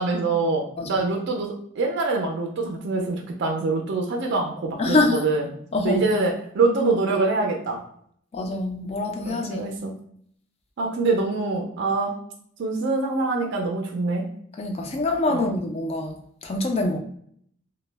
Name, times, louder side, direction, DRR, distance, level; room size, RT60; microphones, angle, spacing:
voice 1, 0.0-5.5 5.8-7.8 9.3-9.9 10.8-12.2 12.6-14.2 15.3-15.5, right 3 dB, 55° right, 1 dB, 0.4 m, -25 dB
voice 2, 4.8-5.2 5.7-6.0 8.3-9.7 14.6-17.0, left 2 dB, 30° left, 4 dB, 0.3 m, -25 dB
2.1 x 2.0 x 3.2 m, 0.65 s
head